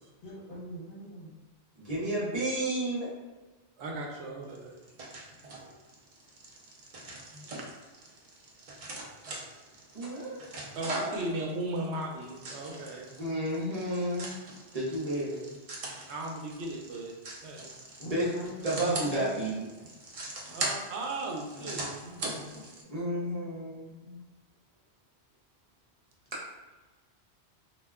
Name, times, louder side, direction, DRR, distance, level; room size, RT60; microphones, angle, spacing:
voice 1, 0.2-1.3 18.0-19.4 21.5-22.6, equal, 55° left, -6 dB, 1.0 m, -42 dB
voice 2, 1.8-3.1 7.3-7.4 9.9-10.5 13.2-14.4 14.7-15.6 18.1-18.3 18.6-19.5 22.9-24.2, right 1 dB, 40° right, -7 dB, 0.8 m, -31 dB
voice 3, 3.8-4.7 10.8-13.1 16.1-17.1 17.4-17.7 20.5-21.9 22.2-22.3, right 2 dB, 85° right, 0 dB, 0.9 m, -36 dB
sound 1, 4.5-22.8, right 2 dB, 55° right, 0.4 m, -41 dB
2.3 x 2.1 x 3.4 m, 1.2 s
omnidirectional pair, 1.1 m